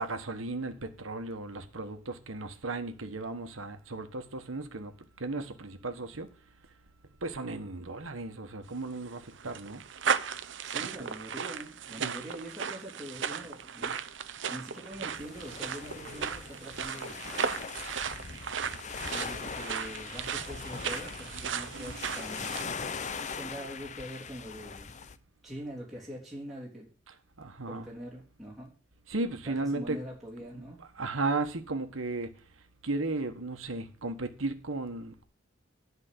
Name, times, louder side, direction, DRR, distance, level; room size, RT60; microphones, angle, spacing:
voice 1, 0.0-4.9 5.2-6.3 7.2-9.8 12.0-12.2 27.4-27.9 29.1-30.0 30.6-30.7 31.0-32.3 32.8-35.2, right 3 dB, 90° right, 1.4 m, -35 dB
sound 1, 8.8-22.6, right 7 dB, 65° right, 0.7 m, -36 dB
voice 2, 10.6-13.9 14.5-17.5 18.8-22.7 23.4-25.2 25.4-26.9 27.6-28.7 29.4-30.8, equal, ahead, 3.3 m, -44 dB
sound 2, 15.1-25.2, left 5 dB, 35° left, 0.6 m, -40 dB
10.5 x 5.1 x 8.4 m
head